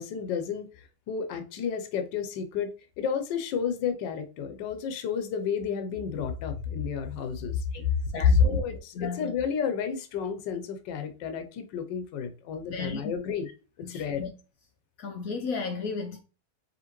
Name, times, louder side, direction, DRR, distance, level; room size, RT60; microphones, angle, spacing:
voice 1, 0.0-7.6 8.2-13.5 13.8-14.2, left 6 dB, 80° left, 1.4 m, -30 dB
voice 2, 8.1-8.6 8.9-9.3 12.7-13.1 13.8-14.3 15.0-16.2, left 4 dB, 65° left, 0.9 m, -34 dB
5.0 x 3.1 x 3.0 m
omnidirectional pair, 1.9 m